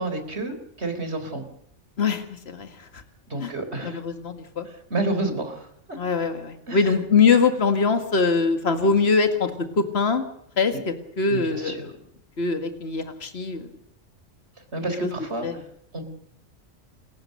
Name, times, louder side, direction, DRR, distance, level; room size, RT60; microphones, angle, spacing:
voice 1, 0.0-1.4 3.3-4.0 4.7-6.0 6.7-6.9 11.3-11.9 14.7-15.7 15.9-16.0, right 2 dB, 60° right, 8 dB, 4.3 m, -30 dB
voice 2, 2.0-3.0 3.4-3.5 3.8-4.7 6.0-9.5 9.8-10.2 10.6-11.9 12.4-13.7 15.0-15.1 15.4-15.6, left 4 dB, 60° left, 7 dB, 2.2 m, -23 dB
28.5 x 15.0 x 6.7 m, 0.71 s
omnidirectional pair, 1.2 m